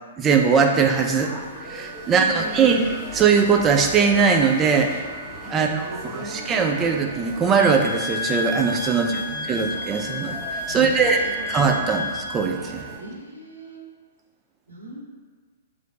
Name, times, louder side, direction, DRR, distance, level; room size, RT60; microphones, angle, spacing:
voice 1, 0.2-1.3 1.7-2.8 3.1-4.9 5.5-10.4 10.7-11.2 11.5-12.8, right 5 dB, 20° right, 3 dB, 0.3 m, -20 dB
sound 1, 1.0-13.0, equal, ahead, 0.7 m, -39 dB
sound 2, 1.5-13.0, right 11 dB, 45° right, 1.4 m, -43 dB
voice 2, 2.0-2.6 5.5-6.9 9.0-9.7 10.7-11.8 13.0-13.8 14.7-15.0, right 2 dB, 80° right, -3 dB, 0.8 m, -38 dB
Wind instrument woodwind instrument, 7.6-12.3, left 3 dB, 60° left, 0.4 m, -31 dB
3.1 x 2.0 x 3.7 m, 1.5 s
figure-of-eight pair, 110°, 0 cm